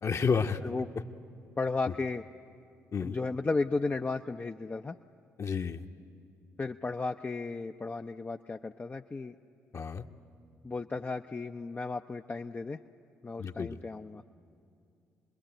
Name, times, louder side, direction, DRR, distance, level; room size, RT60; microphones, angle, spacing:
voice 1, 0.0-0.6 2.9-3.2 5.4-5.8 9.7-10.0 13.4-13.8, left 5 dB, 45° left, 6 dB, 1.2 m, -30 dB
voice 2, 1.6-2.2 3.0-5.0 6.6-9.3 10.6-12.8 13.2-14.2, left 3 dB, 25° left, 5 dB, 0.6 m, -34 dB
26.5 x 21.0 x 9.0 m, 2.5 s
hypercardioid pair, 45°, 7 cm